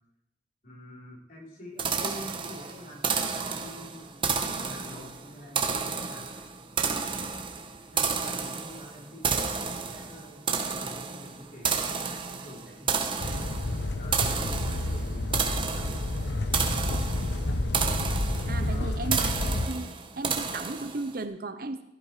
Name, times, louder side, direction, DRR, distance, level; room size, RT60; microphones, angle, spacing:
voice 1, 0.6-6.5 7.9-13.5 14.0-15.9 18.7-19.0, left 1 dB, 45° left, -5 dB, 4.9 m, -46 dB
sound 1, 1.8-21.2, right 5 dB, 25° right, 1.1 m, -31 dB
sound 2, 13.2-19.7, left 1 dB, 70° left, 0.9 m, -30 dB
voice 2, 18.5-19.9 20.2-21.8, right 2 dB, 50° right, 9 dB, 0.8 m, -35 dB
15.0 x 11.0 x 5.0 m, 0.83 s
head